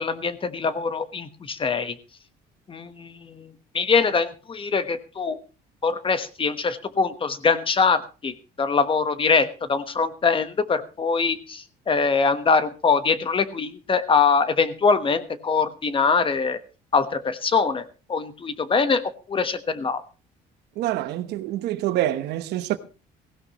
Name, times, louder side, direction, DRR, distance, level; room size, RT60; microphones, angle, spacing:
voice 1, 0.0-1.9 2.7-3.5 3.7-5.4 5.8-16.6 16.9-17.8 18.1-19.0 19.3-20.0, left 5 dB, 30° left, 1.2 m, -23 dB
voice 2, 20.8-22.8, right 14 dB, 80° right, 1.0 m, -26 dB
17.0 x 16.0 x 3.0 m
cardioid pair, 110°, 17 cm